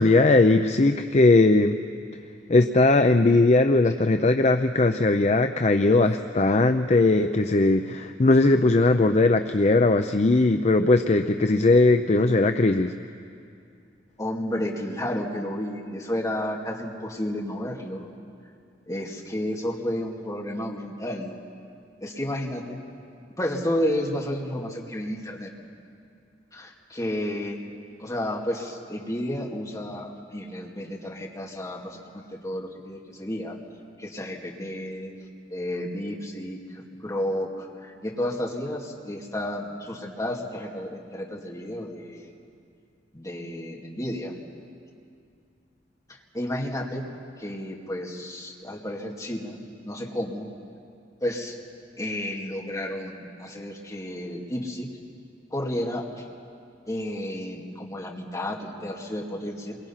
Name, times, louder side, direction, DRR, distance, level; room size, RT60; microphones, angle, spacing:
voice 1, 0.0-1.8 2.5-12.9, left 2 dB, 35° left, 7 dB, 0.6 m, -19 dB
voice 2, 14.2-18.1 18.9-21.3 22.0-22.8 23.4-25.5 26.5-27.6 28.0-33.6 34.0-35.1 35.5-42.3 43.1-44.3 46.3-47.1 47.4-50.5 51.2-51.6 52.0-54.9 55.5-56.2 56.9-59.8, left 1 dB, 20° left, -2 dB, 2.3 m, -31 dB
27.5 x 23.5 x 5.8 m, 2.4 s
head